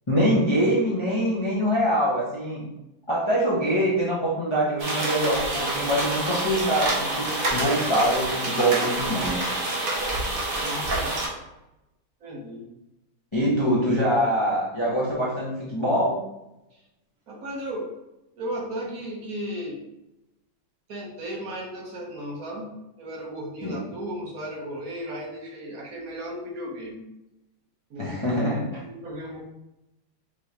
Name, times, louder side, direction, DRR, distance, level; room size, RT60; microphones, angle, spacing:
voice 1, 0.1-2.7 3.1-9.4 9.7-9.8 13.3-16.2 23.6-23.8 28.0-28.8, equal, 25° left, -7 dB, 0.6 m, -24 dB
sound 1, 4.8-11.3, right 2 dB, 40° right, 0.9 m, -27 dB
voice 2, 10.6-11.6 12.2-12.7 16.7-16.8 17.3-17.9 18.3-19.9 20.9-27.0 27.9-28.1 28.8-29.4, equal, 60° right, -2 dB, 1.2 m, -35 dB
5.5 x 3.3 x 2.8 m, 0.92 s
omnidirectional pair, 1.9 m